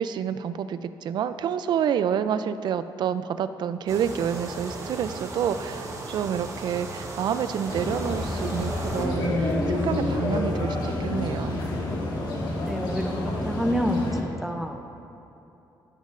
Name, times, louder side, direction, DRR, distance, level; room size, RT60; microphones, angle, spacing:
voice 1, 0.0-11.6, right 8 dB, 60° right, 12 dB, 0.4 m, -28 dB
sound 1, 3.9-9.1, right 2 dB, 35° right, 1.1 m, -36 dB
sound 2, 7.7-14.2, left 2 dB, 55° left, 1.7 m, -28 dB
voice 2, 12.6-13.1 13.4-14.8, equal, 5° right, 4 dB, 0.6 m, -27 dB
15.5 x 7.4 x 2.5 m, 2.9 s
cardioid pair, 145°, 8 cm